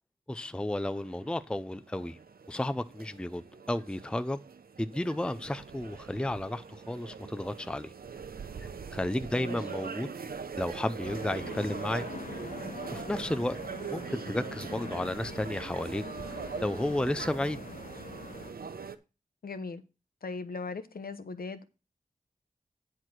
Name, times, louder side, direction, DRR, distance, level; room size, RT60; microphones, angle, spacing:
voice 1, 0.3-2.2 2.5-4.4 4.8-7.9 8.6-10.1 10.6-12.0 12.9-13.6 13.9-16.0 16.6-17.6, left 1 dB, 5° left, 0.5 m, -32 dB
sound 1, 0.9-19.0, right 6 dB, 90° right, 0.8 m, -42 dB
voice 2, 9.3-9.7 19.4-19.8 20.2-21.7, left 4 dB, 85° left, 1.0 m, -39 dB
sound 2, 11.0-18.5, left 4 dB, 60° left, 0.8 m, -44 dB
9.9 x 4.5 x 6.1 m
wide cardioid pair, 70°, 15 cm